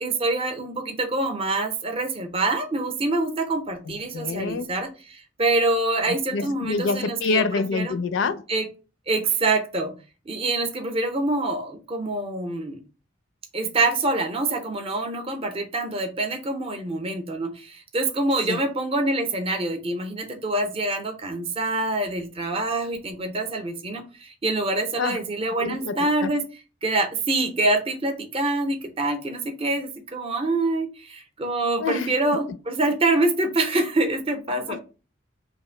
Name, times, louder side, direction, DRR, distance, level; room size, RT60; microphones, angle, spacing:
voice 1, 0.0-7.4 7.7-7.9 8.5-8.7 9.1-9.9 10.3-12.8 13.5-26.4 26.8-34.8, right 2 dB, 30° right, 0.5 m, -25 dB
voice 2, 3.9-4.7 6.1-8.4 18.5-18.6 25.0-25.2 25.6-26.3 31.8-32.5 34.7-34.8, left 4 dB, 70° left, 0.4 m, -27 dB
2.9 x 2.5 x 4.2 m
head